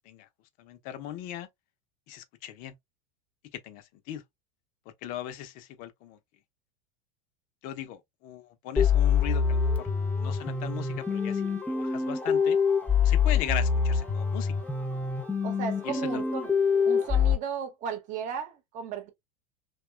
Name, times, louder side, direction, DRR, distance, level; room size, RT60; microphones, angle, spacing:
voice 1, 0.6-1.5 2.1-2.7 3.5-4.2 5.0-6.2 7.6-9.9 10.2-12.6 13.0-14.5 15.8-16.2, left 12 dB, 50° left, 0.5 m, -38 dB
sound 1, 8.8-17.3, left 6 dB, 10° left, 0.6 m, -25 dB
voice 2, 15.4-16.5 16.8-19.1, right 7 dB, 45° right, 0.8 m, -35 dB
2.9 x 2.2 x 2.2 m
hypercardioid pair, 95°, 18 cm